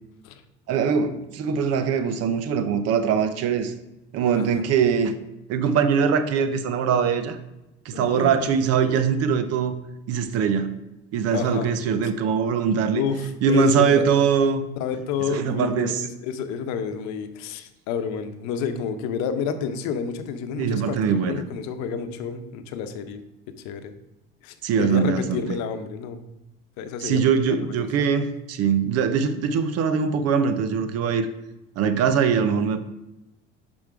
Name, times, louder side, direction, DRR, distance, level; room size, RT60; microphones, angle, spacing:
voice 1, 0.7-3.7 4.1-5.1 5.5-7.4 7.8-9.7 10.1-10.7 11.1-13.0 13.4-14.7 15.3-16.0 20.6-21.4 24.6-25.5 27.0-31.3 31.8-32.8, right 6 dB, 55° right, 11 dB, 0.8 m, -22 dB
voice 2, 4.3-4.6 7.9-8.3 11.3-11.7 13.0-14.0 14.8-23.2 23.6-23.9 24.4-26.2 26.8-27.6, left 6 dB, 65° left, 9 dB, 0.8 m, -30 dB
5.3 x 5.1 x 4.7 m, 0.93 s
supercardioid pair, 90°, 30 cm